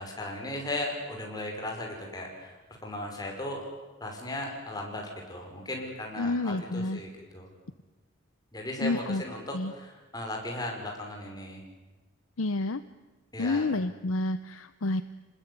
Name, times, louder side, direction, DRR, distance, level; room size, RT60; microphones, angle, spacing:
voice 1, 0.0-3.7 4.0-7.5 8.5-11.6 13.3-13.7, left 1 dB, 20° left, 1 dB, 5.4 m, -37 dB
voice 2, 6.2-7.0 8.8-9.2 9.5-9.7 12.4-12.8 13.4-15.0, left 2 dB, 80° left, 12 dB, 0.8 m, -29 dB
26.5 x 20.0 x 9.7 m, 1.2 s
head